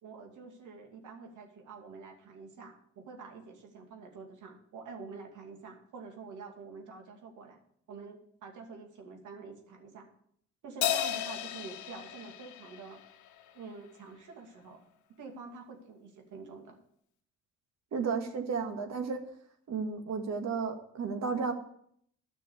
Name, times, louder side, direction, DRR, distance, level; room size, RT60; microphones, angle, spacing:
voice 1, 0.0-7.6 7.9-10.1 10.6-13.0 13.5-14.8 15.1-16.8, right 4 dB, 75° right, 2 dB, 2.5 m, -47 dB
Crash cymbal, 10.8-13.5, left 11 dB, 75° left, 1.0 m, -34 dB
voice 2, 17.9-19.2 19.7-21.5, right 5 dB, 60° right, 5 dB, 1.9 m, -33 dB
10.5 x 6.1 x 8.3 m, 0.67 s
cardioid pair, 90°, 30 cm